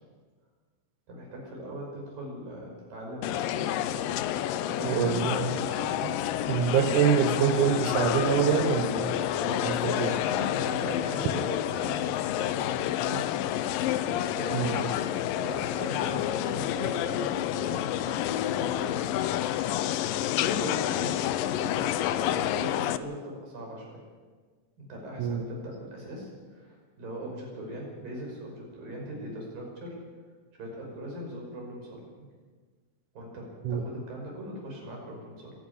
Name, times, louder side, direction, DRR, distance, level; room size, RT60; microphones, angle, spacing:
voice 1, 1.1-6.4 9.9-13.3 13.6-13.8 14.1-19.3 20.2-24.0 24.8-30.0 30.5-32.3 33.1-35.5, right 1 dB, 85° right, -1 dB, 7.6 m, -40 dB
sound 1, 3.2-23.0, left 12 dB, 85° left, 2.5 m, -29 dB
voice 2, 4.8-5.5 6.0-6.1 6.5-10.2 14.5-14.9 25.2-25.5 33.6-33.8, right 7 dB, 70° right, 7 dB, 2.5 m, -26 dB
25.5 x 11.5 x 10.0 m, 1.5 s
omnidirectional pair, 3.9 m